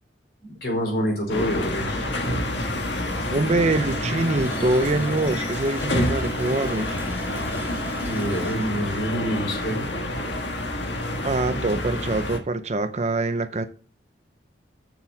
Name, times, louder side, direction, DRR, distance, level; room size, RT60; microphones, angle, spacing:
voice 1, 0.4-2.2 8.0-9.8, equal, 60° left, 4.3 m, -27 dB
sound 1, 1.3-12.4, left 1 dB, 75° left, 1.6 m, -28 dB
voice 2, 3.3-7.0 11.2-13.7, right 2 dB, 35° right, 0.6 m, -24 dB
Water tap faucet, 3.4-9.9 10.3-10.4 10.8-11.0, right 2 dB, 10° right, 1.9 m, -42 dB
7.1 x 5.9 x 7.2 m
head